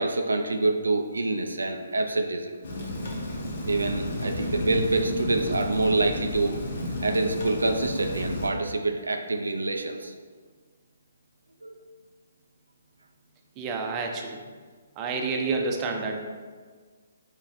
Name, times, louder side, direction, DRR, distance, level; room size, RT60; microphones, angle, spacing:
voice 1, 0.0-2.6 3.6-6.6 7.0-10.2 11.6-11.7, right 2 dB, 85° right, 5 dB, 0.3 m, -26 dB
Rain, 2.6-8.5, left 1 dB, 60° left, 1.0 m, -32 dB
voice 2, 13.6-14.4 15.0-16.2, right 4 dB, 25° right, 2 dB, 0.5 m, -29 dB
4.1 x 3.0 x 3.9 m, 1.5 s
figure-of-eight pair, 140°, 0 cm